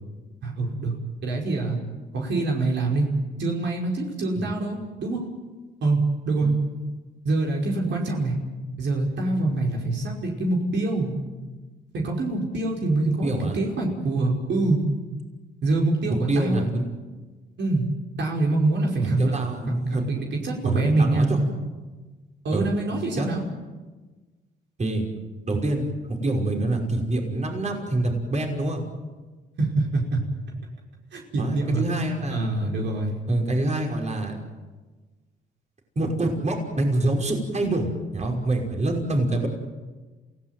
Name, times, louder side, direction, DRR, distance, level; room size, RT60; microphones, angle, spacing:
voice 1, 0.4-0.9 1.2-1.8 2.1-3.1 3.4-5.3 5.8-6.6 7.3-8.3 8.8-11.1 11.9-14.8 15.6-16.6 17.6-17.9 18.2-19.4 19.7-21.3 22.4-23.4 29.6-30.2 31.1-31.8 32.3-33.2, right 2 dB, 65° right, -1 dB, 5.2 m, -25 dB
voice 2, 13.2-13.6 16.3-16.8 19.0-20.0 20.6-21.4 22.5-22.7 23.2-23.3 24.8-25.0 25.5-28.8 31.4-32.5 33.3-34.4 36.0-39.5, right 2 dB, 35° right, 2 dB, 5.6 m, -26 dB
28.0 x 17.0 x 9.3 m, 1.3 s
cardioid pair, 90°, 20 cm